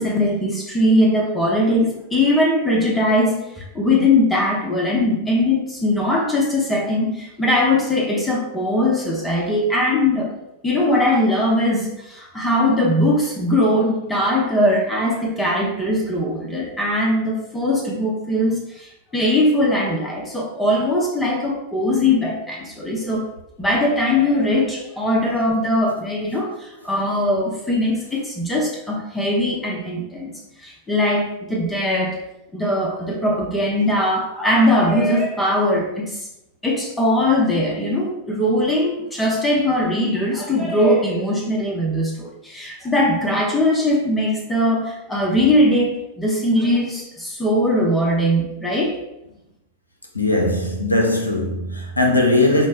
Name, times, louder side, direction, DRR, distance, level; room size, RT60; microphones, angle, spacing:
voice 1, 0.0-10.3 10.6-23.2 23.6-30.3 30.6-32.2 32.5-36.3 36.6-49.0, left 1 dB, 10° left, 0.7 m, -20 dB
voice 2, 50.1-52.7, left 2 dB, 85° left, 0.5 m, -19 dB
4.8 x 2.1 x 3.2 m
figure-of-eight pair, 90°, 0 cm